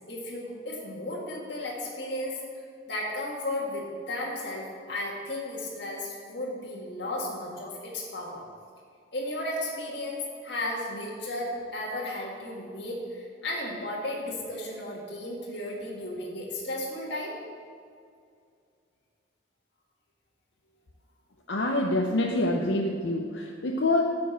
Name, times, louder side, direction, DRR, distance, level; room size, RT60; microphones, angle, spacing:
voice 1, 0.1-2.4 2.9-8.4 9.1-17.3, left 1 dB, 65° left, -4 dB, 1.7 m, -34 dB
voice 2, 21.5-24.0, left 1 dB, 80° left, 0 dB, 0.7 m, -26 dB
8.8 x 5.3 x 7.7 m, 2.3 s
head